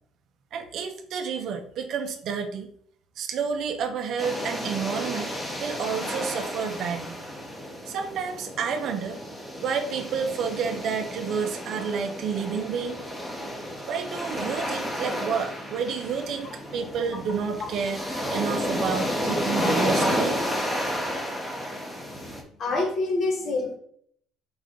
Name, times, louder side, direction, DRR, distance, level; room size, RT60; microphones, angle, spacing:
voice 1, 0.5-2.7 3.2-5.3 5.6-7.2 7.9-9.2 9.6-13.0 13.9-18.0 18.3-20.4, right 6 dB, 60° right, 5 dB, 1.0 m, -30 dB
sound 1, 4.2-22.4, equal, 10° left, 1.4 m, -31 dB
voice 2, 22.6-23.8, left 2 dB, 50° left, 3 dB, 1.6 m, -26 dB
5.0 x 4.9 x 4.0 m, 0.63 s
cardioid pair, 110°, 0 cm